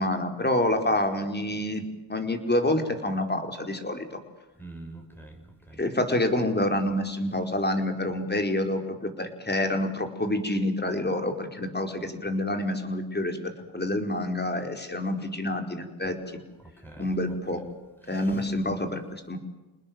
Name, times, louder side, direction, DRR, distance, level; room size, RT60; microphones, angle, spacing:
voice 1, 0.0-1.8 2.1-4.2 5.8-13.4 13.7-16.2 17.0-17.6 18.1-19.4, left 1 dB, 20° left, 6 dB, 4.8 m, -27 dB
voice 2, 4.6-5.8 16.6-17.6 18.0-18.6, right 2 dB, 5° left, 3 dB, 7.0 m, -46 dB
29.0 x 20.0 x 7.8 m, 1.1 s
cardioid pair, 95°, 50 cm